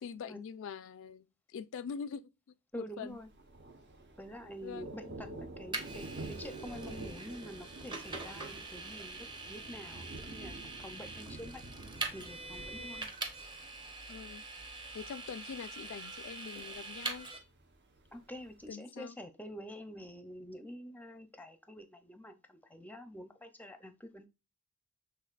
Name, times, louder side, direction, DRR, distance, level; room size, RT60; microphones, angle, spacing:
voice 1, 0.0-2.3 2.7-3.2 4.6-4.9 12.8-13.0 14.1-14.4 14.9-17.3 18.7-19.2, left 6 dB, 65° left, 0.3 m, -44 dB
voice 2, 2.7-3.3 4.2-11.6 12.1-13.1 18.1-24.3, equal, 10° left, 0.6 m, -47 dB
Thunder, 3.1-18.7, right 2 dB, 50° right, 0.9 m, -49 dB
Vehicle, 5.7-17.4, right 3 dB, 20° right, 0.9 m, -43 dB
6.3 x 3.4 x 2.4 m
head